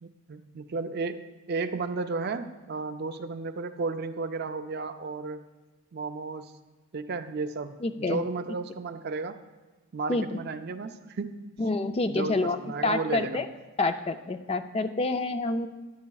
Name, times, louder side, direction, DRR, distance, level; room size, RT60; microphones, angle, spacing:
voice 1, 0.0-5.4 5.9-6.5 6.9-9.4 9.9-11.6 12.1-13.4, right 4 dB, 45° right, 9 dB, 0.4 m, -33 dB
voice 2, 7.8-8.2 10.1-10.3 11.6-12.6 12.8-13.5 13.8-15.7, left 2 dB, 25° left, 9 dB, 0.3 m, -27 dB
13.5 x 9.7 x 2.3 m, 1.1 s
head